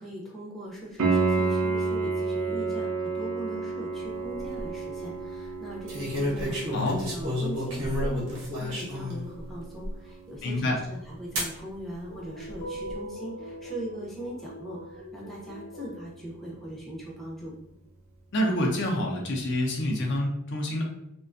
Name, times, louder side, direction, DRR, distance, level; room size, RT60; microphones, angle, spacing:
voice 1, 0.0-17.5, right 1 dB, ahead, -5 dB, 0.5 m, -40 dB
Piano, 1.0-11.6 15.0-15.1, right 4 dB, 70° right, 0.5 m, -32 dB
sound 1, 4.2-4.6 5.9-9.2 9.8-9.9 11.4-11.6 12.5-12.9, left 1 dB, 85° right, 0.8 m, -30 dB
voice 2, 10.4-10.8 18.3-20.8, left 1 dB, 55° left, 0 dB, 0.5 m, -27 dB
sound 2, 12.0-16.1, equal, 90° left, 0.8 m, -41 dB
2.4 x 2.2 x 2.5 m, 0.83 s
head